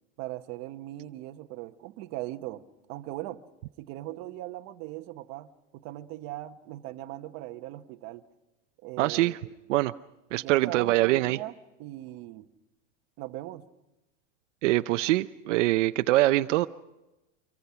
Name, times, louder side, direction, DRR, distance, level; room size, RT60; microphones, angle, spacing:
voice 1, 0.2-2.6 2.9-3.4 3.8-5.5 5.7-8.2 8.8-9.5 10.4-12.5 13.2-13.6, right 16 dB, 40° right, 7 dB, 1.1 m, -39 dB
voice 2, 9.0-9.4 9.7-9.9 10.3-11.4 14.6-16.7, right 17 dB, 70° right, 9 dB, 0.7 m, -24 dB
25.5 x 23.5 x 5.8 m, 0.99 s
supercardioid pair, 165°, 38 cm